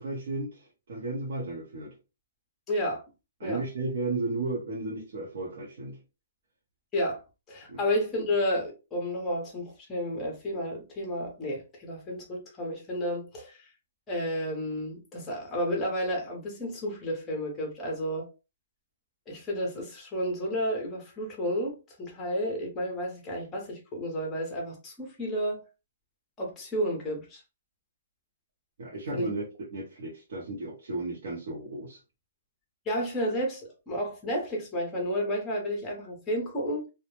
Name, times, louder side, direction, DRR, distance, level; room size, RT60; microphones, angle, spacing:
voice 1, 0.0-1.9 3.4-6.0 7.7-7.8 28.8-29.4 29.7-32.0, right 2 dB, 55° right, 0.7 m, -34 dB
voice 2, 2.7-3.0 3.4-3.6 6.9-7.2 7.5-13.7 14.1-18.3 19.3-25.6 26.4-27.4 29.1-29.3 32.9-36.8, equal, 10° left, 0.6 m, -31 dB
2.1 x 2.0 x 2.9 m
hypercardioid pair, 175°, 0 cm